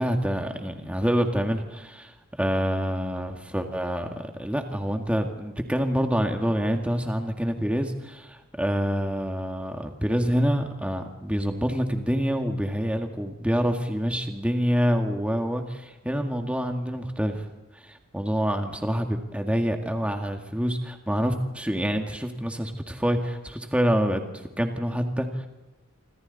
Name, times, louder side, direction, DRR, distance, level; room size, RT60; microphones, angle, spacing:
voice 1, 0.0-17.5 17.7-24.2 24.6-25.5, equal, 5° right, 4 dB, 1.9 m, -27 dB
27.0 x 25.5 x 4.2 m, 1.0 s
head